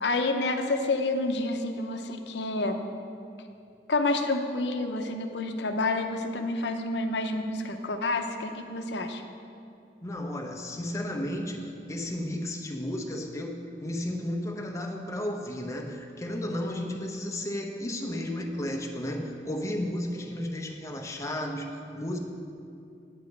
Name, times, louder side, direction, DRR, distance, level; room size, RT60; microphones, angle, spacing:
voice 1, 0.0-2.8 3.9-9.2, left 2 dB, 75° left, 6 dB, 0.8 m, -29 dB
voice 2, 10.0-22.2, left 1 dB, 15° left, 2 dB, 0.8 m, -33 dB
9.6 x 5.1 x 7.9 m, 2.6 s
head